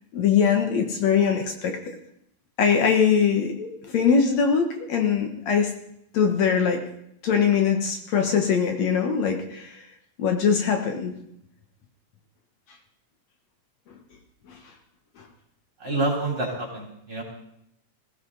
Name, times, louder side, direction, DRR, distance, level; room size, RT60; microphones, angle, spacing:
voice 1, 0.1-1.8 2.6-5.7 6.1-6.8 7.2-9.8 10.2-11.1, left 6 dB, 65° left, 4 dB, 2.5 m, -22 dB
voice 2, 15.8-17.2, right 2 dB, 35° right, -2 dB, 4.3 m, -27 dB
21.0 x 16.0 x 4.0 m, 0.75 s
omnidirectional pair, 3.4 m